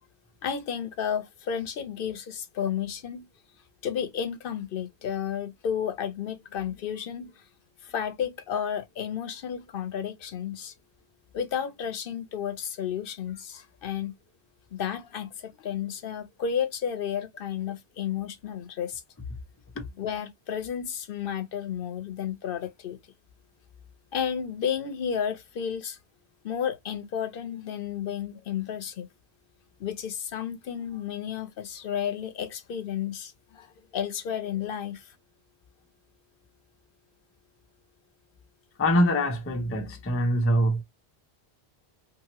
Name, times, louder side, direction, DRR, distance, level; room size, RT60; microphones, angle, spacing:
voice 1, 0.4-3.3 3.8-7.4 7.8-10.7 11.3-14.1 14.7-19.0 20.0-23.0 24.1-26.0 26.4-29.1 29.8-35.1, left 8 dB, 65° left, 0.7 m, -32 dB
voice 2, 38.8-40.8, equal, 20° left, 0.4 m, -24 dB
2.8 x 2.6 x 2.8 m
omnidirectional pair, 1.0 m